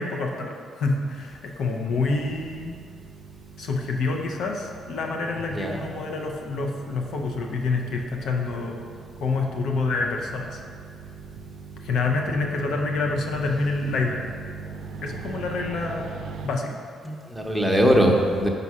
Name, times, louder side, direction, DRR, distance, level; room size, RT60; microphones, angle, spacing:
voice 1, 0.0-2.7 3.6-8.9 9.2-10.6 11.8-14.3 15.0-16.1 16.4-16.8, left 3 dB, 75° left, 2 dB, 0.6 m, -27 dB
sound 1, 1.9-16.5, right 4 dB, 70° right, 0.3 m, -41 dB
voice 2, 5.5-5.9 17.0-18.5, equal, 5° right, 0 dB, 0.8 m, -21 dB
5.4 x 4.2 x 4.8 m, 2.2 s
cardioid pair, 90°, 0 cm